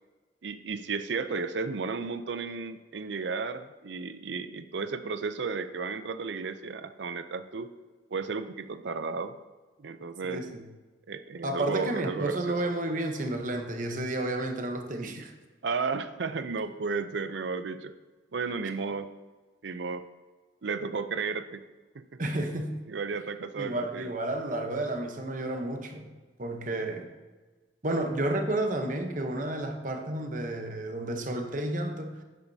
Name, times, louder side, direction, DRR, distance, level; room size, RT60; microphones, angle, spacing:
voice 1, 0.4-7.7 8.1-9.4 9.8-10.5 11.1-12.6 15.6-17.9 18.3-19.1 19.6-20.1 20.6-21.6 21.9-22.0 22.9-24.1, right 4 dB, 70° right, 11 dB, 0.5 m, -33 dB
voice 2, 10.2-10.7 11.4-15.3 22.2-22.7 23.6-26.1 26.4-27.1 27.8-32.2, right 1 dB, 45° right, 4 dB, 0.9 m, -31 dB
10.5 x 8.4 x 2.8 m, 1.3 s
head